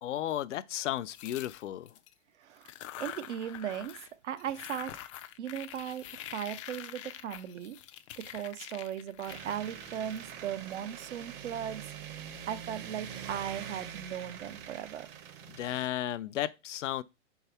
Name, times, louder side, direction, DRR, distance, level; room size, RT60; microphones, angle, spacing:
voice 1, 0.0-1.9 15.5-17.0, left 12 dB, 75° left, 0.6 m, -34 dB
sound 1, 1.1-2.1 2.6-4.1 4.4-10.8, left 13 dB, 30° left, 0.4 m, -46 dB
voice 2, 2.4-2.7 3.0-4.9 5.4-7.8 8.2-11.8 12.5-15.1, right 9 dB, 70° right, 0.9 m, -37 dB
sound 2, 9.3-15.9, right 8 dB, 30° right, 0.8 m, -44 dB
4.7 x 4.4 x 5.6 m
hypercardioid pair, 135°, 36 cm